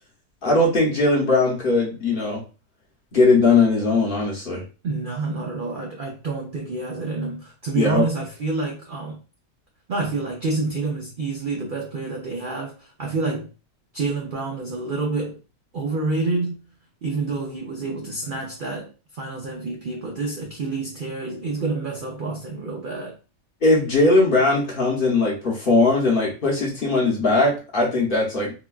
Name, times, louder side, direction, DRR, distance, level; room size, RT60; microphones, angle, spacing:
voice 1, 0.4-2.4 3.1-4.6 7.8-8.0 23.6-28.5, left 3 dB, 45° left, 0.8 m, -19 dB
voice 2, 4.8-9.2 9.9-13.5 13.9-15.4 15.7-16.5 17.0-23.2, right 3 dB, 85° right, 0.4 m, -28 dB
3.9 x 2.2 x 2.3 m
omnidirectional pair, 1.6 m